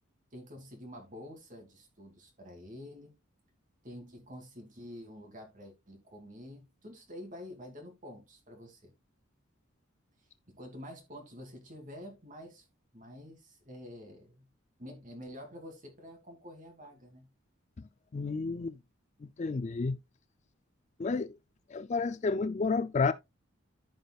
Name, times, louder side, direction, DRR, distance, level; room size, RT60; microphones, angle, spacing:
voice 1, 0.3-3.2 3.8-8.9 10.5-12.6 12.9-14.4 14.8-17.3, left 1 dB, 40° right, 2.6 m, -48 dB
voice 2, 18.1-18.8 19.4-20.0 21.0-21.4 21.7-23.1, left 4 dB, 35° left, 0.4 m, -30 dB
14.5 x 5.2 x 2.3 m
head